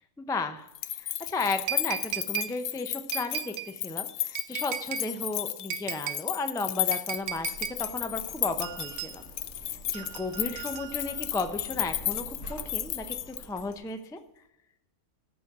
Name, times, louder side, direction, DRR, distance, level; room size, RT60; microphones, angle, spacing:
voice 1, 0.2-7.5 7.8-9.2 9.9-14.2, left 3 dB, 5° left, 8 dB, 0.3 m, -34 dB
sound 1, 0.7-13.7, left 13 dB, 80° left, 1.0 m, -34 dB
sound 2, 1.7-2.5 3.1-3.7 4.3-5.1 5.7-6.2 6.9-7.8 8.6-9.1 9.9-11.2 12.2-12.3, right 11 dB, 90° right, 1.2 m, -36 dB
Zipper (clothing), 7.1-13.7, right 1 dB, 50° left, 2.1 m, -47 dB
14.5 x 5.1 x 6.0 m, 0.88 s
omnidirectional pair, 1.5 m